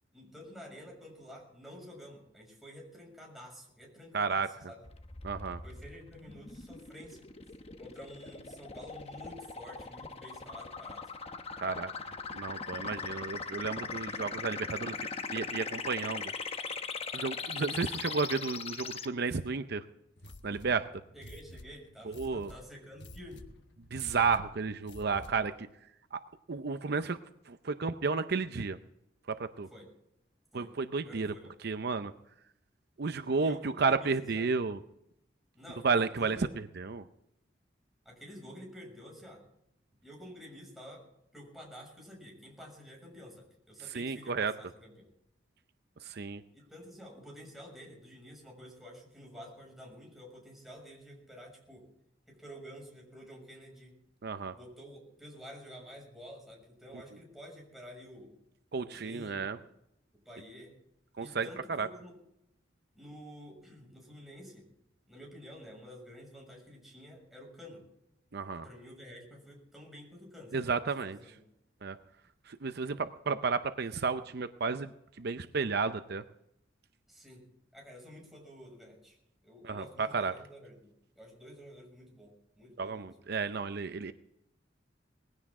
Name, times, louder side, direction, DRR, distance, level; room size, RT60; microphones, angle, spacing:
voice 1, 0.1-4.8 5.6-7.3 7.8-11.1 21.1-23.4 29.7-29.9 30.5-30.7 31.0-31.5 33.3-34.5 35.5-36.5 38.0-39.4 40.0-41.1 41.3-45.1 46.5-51.9 52.3-53.9 54.5-58.3 58.7-59.7 60.1-60.7 61.2-62.1 62.9-64.7 65.1-67.8 68.6-70.7 71.0-71.4 77.1-77.5 77.7-79.2 79.4-83.1, equal, ahead, -2 dB, 6.6 m, -50 dB
voice 2, 4.1-4.5 5.2-5.6 11.6-11.9 12.3-14.9 15.3-16.2 17.1-19.8 20.4-20.9 22.2-22.5 23.9-25.7 26.1-26.2 26.5-27.2 27.5-28.8 29.4-29.7 30.5-31.3 31.6-32.1 33.0-34.8 35.8-36.4 36.8-37.0 43.9-44.5 46.0-46.4 54.2-54.5 58.7-59.6 61.2-61.5 61.8-61.9 68.3-68.6 70.5-71.2 71.8-72.0 72.5-74.9 75.2-76.2 79.6-80.3 82.8-84.1, right 4 dB, 60° right, 10 dB, 0.6 m, -32 dB
sound 1, 4.9-19.1, left 5 dB, 35° left, 1.0 m, -40 dB
sound 2, 20.2-25.6, left 1 dB, 70° left, 1.3 m, -51 dB
20.0 x 16.0 x 3.7 m, 0.79 s
head